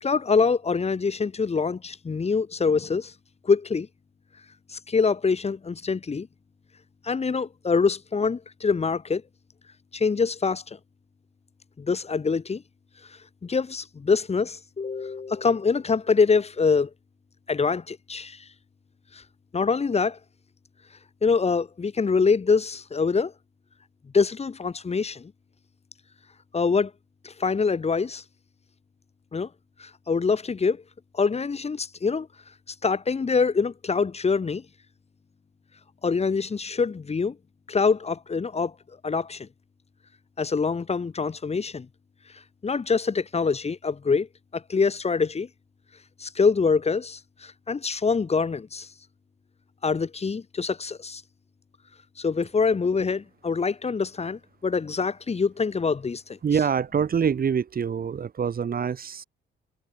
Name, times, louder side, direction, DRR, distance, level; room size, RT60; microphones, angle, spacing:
voice 1, 0.0-3.1 3.4-3.9 4.7-6.3 7.0-9.2 9.9-10.8 11.8-12.6 13.4-16.9 17.5-18.4 19.1-19.2 19.5-20.2 21.2-23.3 24.1-25.3 26.5-26.9 27.2-28.2 29.3-29.5 29.8-30.8 31.1-32.3 32.8-34.6 36.0-37.4 37.7-38.7 39.0-39.5 40.4-41.9 42.6-44.3 44.5-45.5 46.2-48.9 49.8-51.2 52.2-56.4, left 5 dB, 30° left, 2.1 m, -25 dB
voice 2, 56.4-59.2, right 7 dB, 45° right, 4.4 m, -25 dB
cardioid pair, 90°, 20 cm